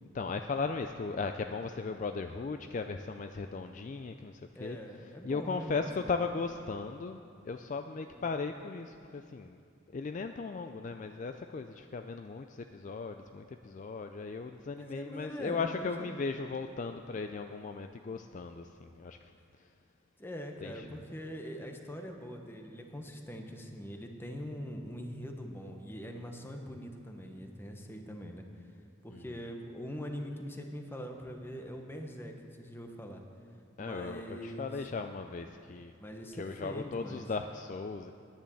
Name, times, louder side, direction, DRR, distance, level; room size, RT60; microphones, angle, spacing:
voice 1, 0.1-4.8 5.2-9.6 9.9-19.3 19.6-19.7 20.6-21.0 29.1-29.2 33.8-35.9 36.3-38.1, left 4 dB, 40° left, 7 dB, 0.4 m, -37 dB
voice 2, 4.5-6.1 8.0-8.3 14.7-16.3 20.2-28.4 29.0-33.2 33.8-34.7 36.0-37.3, equal, 10° left, 3 dB, 1.0 m, -43 dB
10.5 x 10.0 x 7.0 m, 2.4 s
head